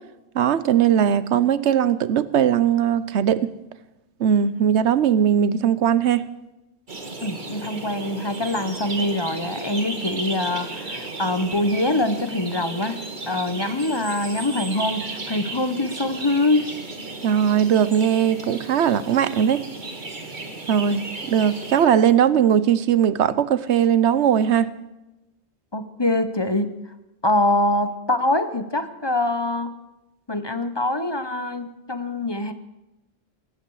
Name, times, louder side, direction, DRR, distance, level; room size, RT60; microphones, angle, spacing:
voice 1, 0.3-3.5 4.2-6.3 17.2-19.7 20.7-24.7, right 9 dB, 80° right, 1.1 m, -19 dB
sound 1, 6.9-21.9, right 3 dB, 45° right, 1.8 m, -34 dB
voice 2, 7.2-13.0 13.3-16.7 25.7-26.8 27.2-29.8 30.3-32.5, left 2 dB, 25° left, 0.9 m, -24 dB
18.0 x 15.5 x 4.8 m
omnidirectional pair, 1.2 m